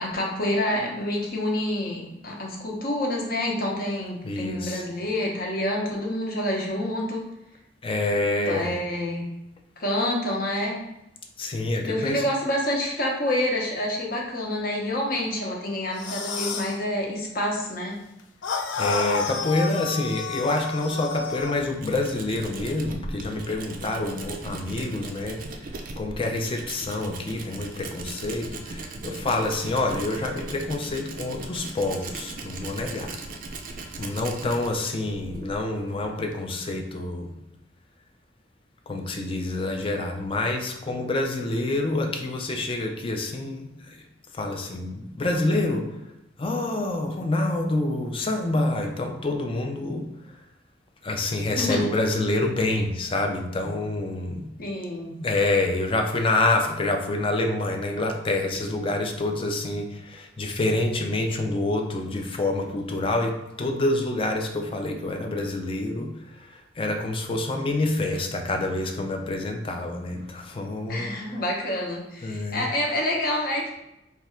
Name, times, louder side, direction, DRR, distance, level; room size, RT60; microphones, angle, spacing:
voice 1, 0.0-7.2 8.5-9.3 9.8-10.9 11.8-18.0 51.6-51.9 54.6-55.2 70.9-73.7, left 1 dB, 55° left, -1 dB, 0.8 m, -27 dB
voice 2, 4.2-4.8 7.8-8.7 11.4-12.2 18.8-25.4 26.0-33.2 34.0-37.3 38.9-44.0 44.3-45.9 46.4-50.1 51.0-54.5 55.1-66.1 66.4-71.1 72.2-72.7, left 2 dB, 30° left, 4 dB, 0.4 m, -27 dB
sound 1, 15.9-16.8 18.4-21.6, left 5 dB, 85° left, 0.4 m, -30 dB
Tools, 21.1-36.5, right 2 dB, 50° right, 0.4 m, -39 dB
3.3 x 2.4 x 4.2 m, 0.89 s
head